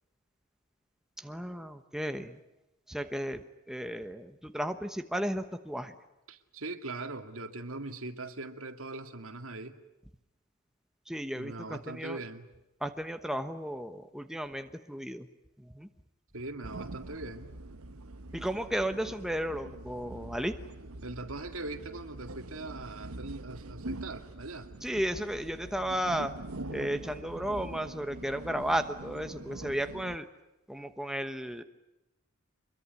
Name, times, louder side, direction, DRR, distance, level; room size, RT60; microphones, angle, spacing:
voice 1, 1.2-2.4 2.9-3.4 3.7-5.9 11.1-12.2 12.8-15.3 15.7-15.9 18.3-20.5 24.8-26.3 26.7-30.2 30.7-31.6, equal, ahead, 7 dB, 1.1 m, -34 dB
voice 2, 6.3-9.8 11.3-12.5 16.3-17.5 21.0-24.7, right 2 dB, 75° right, 7 dB, 2.3 m, -41 dB
sound 1, 16.6-30.2, right 2 dB, 90° right, 1.2 m, -44 dB
25.0 x 22.5 x 9.7 m, 0.93 s
head